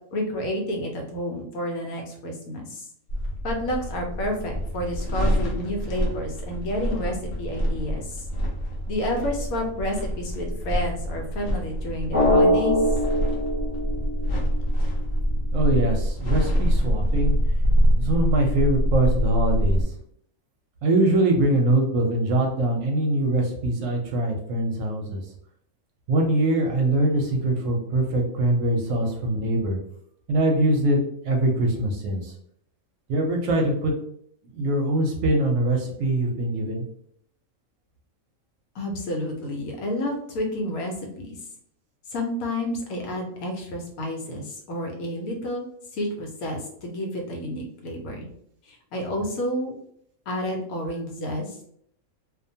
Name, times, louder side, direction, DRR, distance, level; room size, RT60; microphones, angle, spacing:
voice 1, 0.1-2.8 3.4-8.2 8.9-12.8 38.7-41.4 42.1-45.7 45.9-48.3 48.7-49.7 50.3-51.7, left 1 dB, 75° left, 2 dB, 1.1 m, -30 dB
sound 1, 3.1-19.8, equal, 60° left, 0.6 m, -25 dB
Drum, 12.1-14.7, equal, 15° right, 0.6 m, -22 dB
voice 2, 15.5-17.3 18.0-19.8 20.8-25.2 26.1-29.8 30.3-31.0 31.2-32.3 33.1-33.9 34.5-36.8, right 1 dB, 70° right, 1 dB, 0.9 m, -23 dB
2.5 x 2.1 x 2.6 m, 0.67 s
omnidirectional pair, 1.5 m